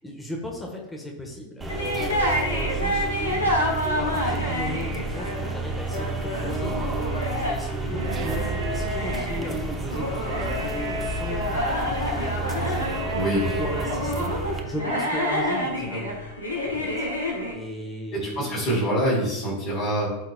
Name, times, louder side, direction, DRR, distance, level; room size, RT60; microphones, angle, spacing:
voice 1, 0.0-3.5 4.0-6.8 7.3-13.0 13.3-14.3 14.6-16.2 16.6-17.1 17.5-18.6, equal, 10° left, -1 dB, 1.2 m, -36 dB
sound 1, 1.6-14.6, right 3 dB, 15° right, 0.9 m, -31 dB
sound 2, 1.7-17.5, left 1 dB, 85° left, 1.6 m, -29 dB
sound 3, 7.9-9.2 10.2-11.9 12.7-14.0 14.8-15.7, right 1 dB, 60° right, 1.5 m, -34 dB
voice 2, 13.1-13.5 18.1-20.1, right 1 dB, 45° left, -6 dB, 2.4 m, -25 dB
13.0 x 4.5 x 2.2 m, 0.95 s
figure-of-eight pair, 90°, 0 cm